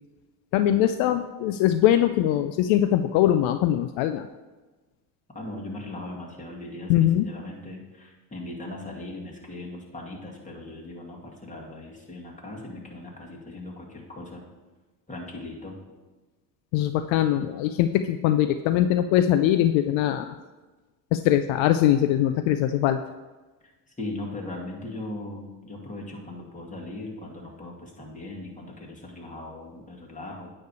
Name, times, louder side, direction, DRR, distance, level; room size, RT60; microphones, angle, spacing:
voice 1, 0.5-4.3 6.9-7.3 16.7-20.3 21.1-23.0, left 12 dB, 65° left, 9 dB, 0.5 m, -22 dB
voice 2, 5.3-14.4 15.1-15.8 23.9-30.5, left 2 dB, 15° left, -2 dB, 2.2 m, -39 dB
9.3 x 3.3 x 6.9 m, 1.2 s
hypercardioid pair, 75°, 49 cm